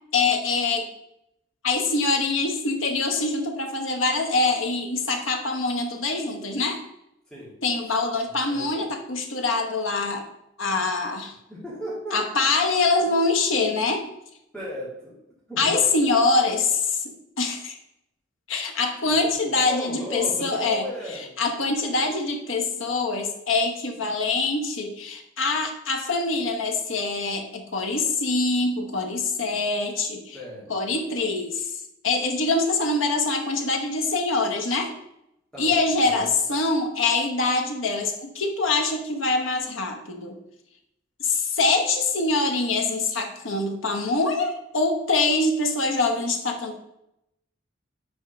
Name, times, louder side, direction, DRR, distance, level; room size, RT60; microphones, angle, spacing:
voice 1, 0.1-0.9 1.6-6.8 7.6-10.2 10.6-11.4 12.1-14.0 15.6-17.0 17.4-17.8 18.5-20.8 21.4-30.4 30.7-34.9 35.6-40.3 41.2-46.8, left 3 dB, 85° left, 4 dB, 1.1 m, -24 dB
voice 2, 8.3-8.8 11.5-12.2 14.5-15.2 15.5-15.8 19.1-21.3 21.8-21.9 30.3-30.7 35.5-36.3, equal, 5° left, -8 dB, 2.4 m, -36 dB
5.4 x 4.4 x 6.1 m, 0.82 s
head